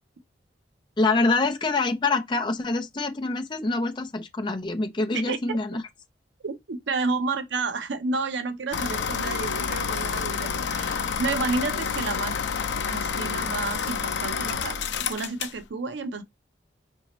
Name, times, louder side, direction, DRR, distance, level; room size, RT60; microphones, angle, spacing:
voice 1, 1.0-5.8, left 3 dB, 25° left, 0.5 m, -25 dB
voice 2, 5.1-5.6 6.4-12.5 12.9-16.2, right 3 dB, 80° right, 0.6 m, -31 dB
sound 1, 8.7-15.6, left 6 dB, 80° left, 0.5 m, -29 dB
sound 2, 8.8-14.5, right 3 dB, 5° left, 1.3 m, -44 dB
4.9 x 2.7 x 3.0 m
head